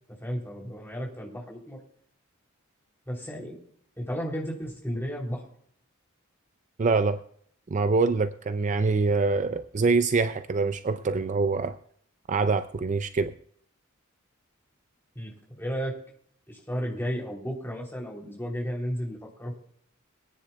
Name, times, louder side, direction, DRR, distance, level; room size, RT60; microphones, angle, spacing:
voice 1, 0.2-1.8 3.1-3.6 4.0-5.4 15.1-16.0 16.5-19.6, equal, 10° left, -1 dB, 3.2 m, -33 dB
voice 2, 6.8-7.2 7.7-11.8 12.3-13.3, right 4 dB, 35° right, 10 dB, 0.4 m, -25 dB
23.5 x 9.9 x 2.3 m, 0.64 s
head